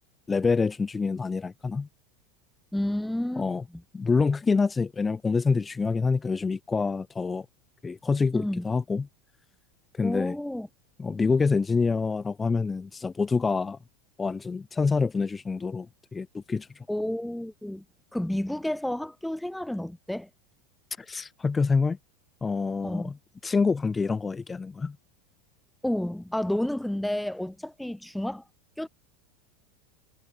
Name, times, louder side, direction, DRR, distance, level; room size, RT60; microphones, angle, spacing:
voice 1, 0.3-1.9 3.4-3.6 3.9-7.4 7.8-9.1 9.9-10.4 11.0-13.8 14.2-15.9 16.1-16.8 21.0-22.0 22.4-23.1 23.4-25.0, left 4 dB, 20° left, 3.2 m, -26 dB
voice 2, 2.7-3.5 8.3-8.6 10.0-10.7 16.9-17.8 18.1-20.3 22.8-23.1 25.8-28.4 28.8-28.9, left 1 dB, 5° left, 4.0 m, -30 dB
hypercardioid pair, 90°, 0 cm